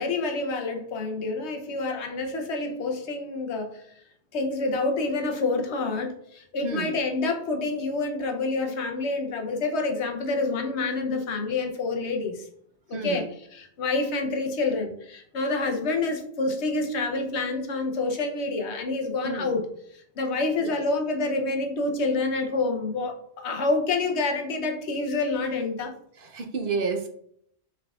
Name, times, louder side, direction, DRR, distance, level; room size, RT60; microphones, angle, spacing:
voice 1, 0.0-3.8 4.3-12.5 12.9-13.2 13.5-19.7 19.9-25.9, left 3 dB, 90° left, 4 dB, 1.1 m, -28 dB
voice 2, 12.9-13.3 19.2-19.5 20.6-20.8 26.2-27.1, right 4 dB, 60° right, 4 dB, 0.9 m, -30 dB
5.7 x 3.5 x 2.4 m, 0.66 s
omnidirectional pair, 1.1 m